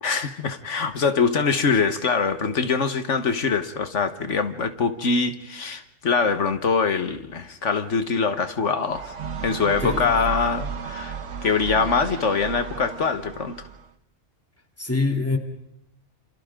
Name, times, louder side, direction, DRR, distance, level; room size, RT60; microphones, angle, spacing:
voice 1, 0.0-9.1 9.4-13.7, left 5 dB, 80° left, 9 dB, 1.7 m, -23 dB
sound 1, 8.9-13.9, right 6 dB, 80° right, 1.5 m, -33 dB
voice 2, 9.8-10.3 14.8-15.4, left 3 dB, 10° left, 3 dB, 2.7 m, -25 dB
29.0 x 28.5 x 3.8 m, 0.78 s
omnidirectional pair, 1.2 m